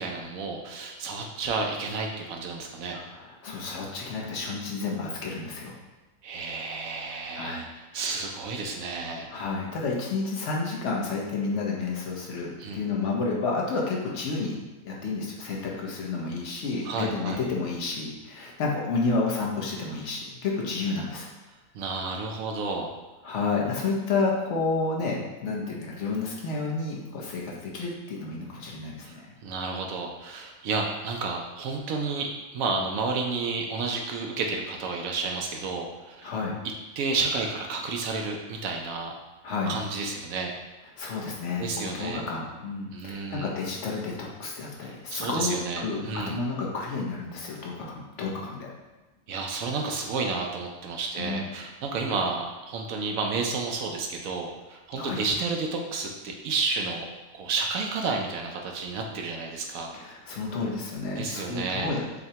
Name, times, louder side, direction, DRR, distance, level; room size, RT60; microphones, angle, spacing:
voice 1, 0.0-3.0 6.2-9.3 12.6-12.8 16.9-17.4 21.7-22.9 29.0-29.1 29.4-36.3 37.0-39.1 39.7-40.5 41.6-42.2 42.9-43.5 44.8-46.4 49.3-57.1 57.3-59.9 61.2-61.9, right 4 dB, 70° right, 2 dB, 1.0 m, -31 dB
voice 2, 2.9-5.7 7.3-7.6 8.0-8.1 9.3-14.6 14.8-21.3 23.2-29.3 36.2-36.6 39.4-39.8 41.0-48.7 51.2-51.5 55.0-55.2 59.9-62.0, left 3 dB, 60° left, -2 dB, 1.0 m, -30 dB
6.4 x 2.2 x 2.8 m, 1.1 s
omnidirectional pair, 1.5 m